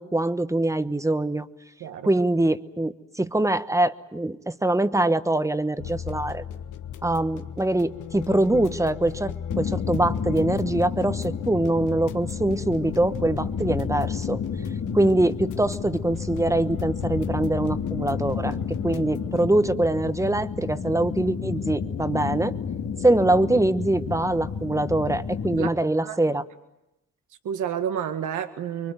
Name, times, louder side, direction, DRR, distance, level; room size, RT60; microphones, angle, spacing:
voice 1, 0.0-1.5 2.0-6.4 7.0-14.4 14.9-22.5 23.0-26.4, right 1 dB, 10° right, 12 dB, 1.2 m, -23 dB
sound 1, 5.8-19.4, left 8 dB, 85° left, 1.5 m, -36 dB
sound 2, 9.5-25.7, left 6 dB, 60° left, 2.0 m, -31 dB
voice 2, 26.0-26.4 27.4-28.9, right 8 dB, 80° right, 7 dB, 1.8 m, -30 dB
25.0 x 23.5 x 9.5 m, 0.91 s
cardioid pair, 90°, 30 cm